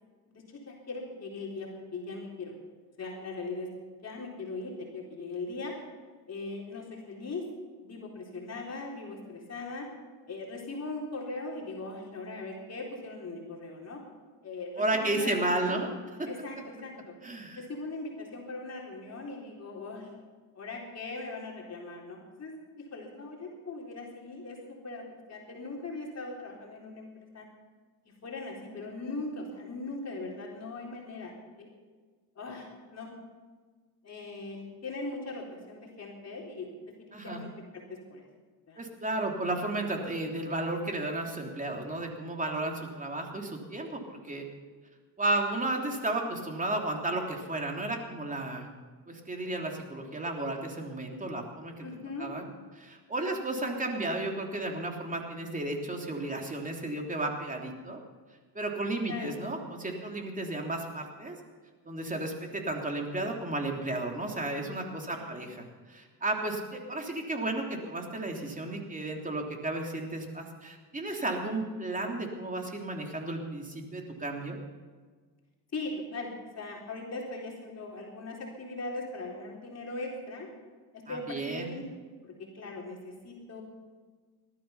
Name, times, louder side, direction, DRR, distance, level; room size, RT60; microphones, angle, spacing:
voice 1, 0.3-2.6 3.0-3.7 4.0-5.8 6.3-7.5 7.8-9.9 10.3-14.0 14.4-15.9 16.3-17.2 17.6-20.1 20.5-27.1 27.3-27.5 28.1-31.8 32.4-33.2 34.0-38.2 38.7-38.8 51.8-52.3 59.1-59.3 65.1-65.4 75.7-80.5 80.9-81.8 82.2-83.6, left 3 dB, 40° left, -1 dB, 3.8 m, -40 dB
voice 2, 14.8-15.9 16.2-16.3 17.2-17.6 37.1-37.4 38.8-44.4 45.2-48.7 49.1-51.7 52.2-52.5 52.7-58.0 58.5-61.4 61.8-74.6 81.1-81.7, right 2 dB, 20° right, 2 dB, 3.3 m, -33 dB
19.0 x 13.0 x 5.7 m, 1.4 s
cardioid pair, 95°, 41 cm